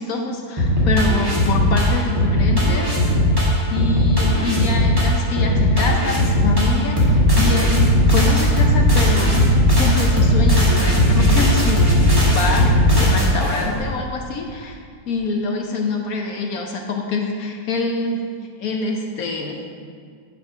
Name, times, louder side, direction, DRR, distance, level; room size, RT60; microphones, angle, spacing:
voice 1, 0.0-14.8 15.1-18.2 18.6-19.6, left 3 dB, 65° left, 2 dB, 1.0 m, -25 dB
sound 1, 0.6-13.8, equal, 15° right, 1.5 m, -17 dB
9.7 x 3.9 x 5.7 m, 2.1 s
omnidirectional pair, 1.8 m